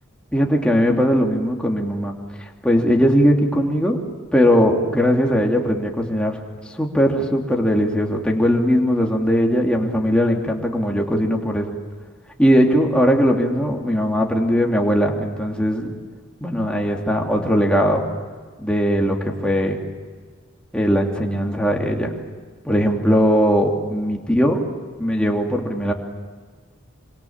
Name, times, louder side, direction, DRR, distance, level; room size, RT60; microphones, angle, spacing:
voice 1, 0.3-2.1 2.6-4.0 4.3-6.4 6.8-11.8 12.4-16.0 16.4-18.0 18.6-19.8 20.7-22.1 22.6-24.6 25.0-25.9, equal, 5° left, 0 dB, 2.9 m, -19 dB
26.5 x 26.5 x 7.5 m, 1.5 s
head